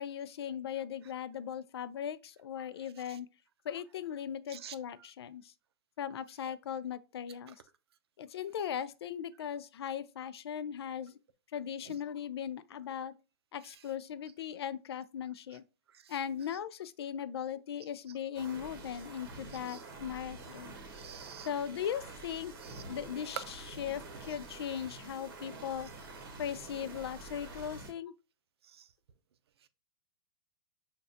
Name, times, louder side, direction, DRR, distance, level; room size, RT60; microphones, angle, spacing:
voice 1, 0.0-3.3 3.6-5.5 6.0-7.6 8.2-11.2 11.5-13.1 13.5-15.6 16.1-20.7 21.5-22.5 22.9-25.9 26.4-28.1, left 9 dB, 85° left, 0.4 m, -38 dB
sound 1, 18.3-27.9, right 3 dB, 60° right, 1.1 m, -48 dB
voice 2, 20.9-21.5 22.6-22.8 28.7-28.8, right 9 dB, 90° right, 0.5 m, -49 dB
5.6 x 2.3 x 2.6 m
hypercardioid pair, 165°, 13 cm